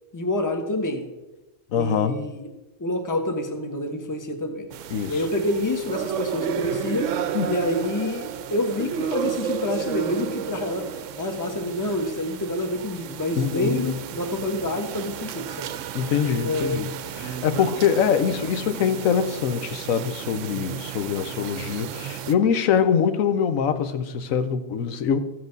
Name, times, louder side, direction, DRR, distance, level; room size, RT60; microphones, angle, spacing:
voice 1, 0.1-1.1 1.7-2.5 2.8-4.7 5.1-7.1 7.4-10.8 11.2-15.7 16.4-16.9, left 1 dB, 15° left, 1.0 m, -27 dB
voice 2, 1.7-2.2 4.9-5.2 7.3-7.5 13.4-14.0 15.9-25.2, left 7 dB, 75° left, 1.2 m, -24 dB
sound 1, 4.7-22.3, right 9 dB, 70° right, 0.9 m, -32 dB
14.5 x 7.8 x 3.9 m
omnidirectional pair, 1.5 m